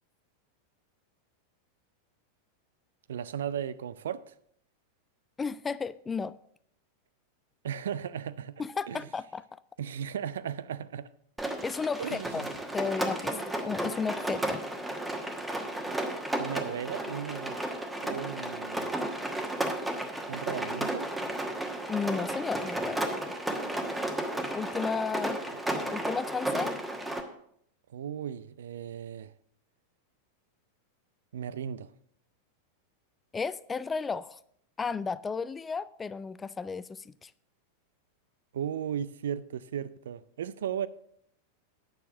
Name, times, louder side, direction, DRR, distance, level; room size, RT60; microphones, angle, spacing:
voice 1, 3.1-4.3 7.6-8.6 8.9-9.1 9.8-11.1 12.0-12.5 16.4-17.7 18.0-19.0 20.3-21.1 27.9-29.3 31.3-31.9 38.5-40.9, right 9 dB, 60° right, 0.4 m, -36 dB
voice 2, 5.4-6.4 8.6-9.4 11.6-12.4 12.7-14.6 21.9-23.1 24.5-25.4 25.9-26.7 33.3-34.4 34.8-37.3, left 5 dB, 15° left, 0.3 m, -33 dB
Rain, 11.4-27.2, right 1 dB, 5° right, 1.2 m, -33 dB
9.5 x 6.5 x 6.0 m
figure-of-eight pair, 90°, 0 cm